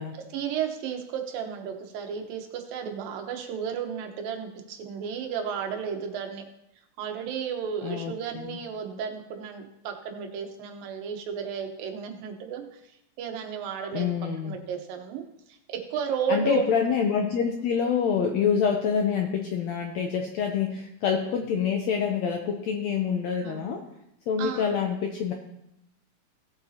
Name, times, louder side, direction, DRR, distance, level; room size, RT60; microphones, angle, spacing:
voice 1, 0.3-6.4 7.0-12.8 13.2-14.1 14.4-15.2 15.5-16.7 23.4-23.7 24.4-24.8, right 7 dB, 85° right, 4 dB, 2.8 m, -33 dB
voice 2, 7.8-8.1 8.5-8.6 13.9-14.6 16.3-23.8 24.3-25.3, left 7 dB, 80° left, 3 dB, 1.6 m, -26 dB
17.0 x 7.9 x 2.8 m, 0.83 s
omnidirectional pair, 3.9 m